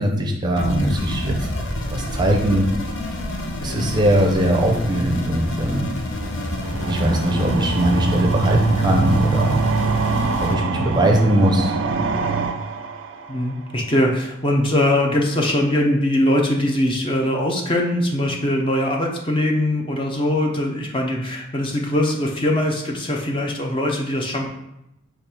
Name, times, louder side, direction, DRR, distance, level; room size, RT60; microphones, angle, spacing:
voice 1, 0.0-2.7 3.6-5.9 6.9-9.6 10.4-11.7, right 1 dB, 20° right, 1 dB, 0.6 m, -20 dB
sound 1, 0.6-10.5, left 1 dB, 80° left, 0.7 m, -28 dB
voice 2, 3.6-3.9 10.7-11.0 13.3-24.5, left 1 dB, 25° left, 0 dB, 0.6 m, -21 dB
sound 2, 6.6-13.6, right 4 dB, 80° right, 0.4 m, -24 dB
5.1 x 2.4 x 4.3 m, 0.86 s
head